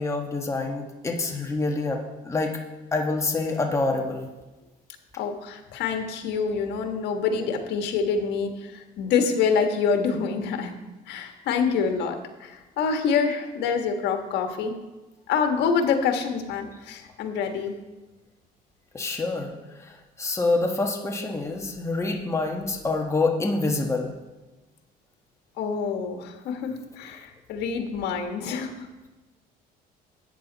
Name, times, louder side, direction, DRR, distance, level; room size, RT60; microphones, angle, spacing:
voice 1, 0.0-2.6 2.9-4.3 18.9-24.1, left 3 dB, 15° left, 1 dB, 1.4 m, -27 dB
voice 2, 5.2-10.7 11.1-14.7 15.3-17.8 25.6-28.9, left 6 dB, 80° left, 5 dB, 1.5 m, -26 dB
13.0 x 9.0 x 4.1 m, 1.1 s
cardioid pair, 110°, 17 cm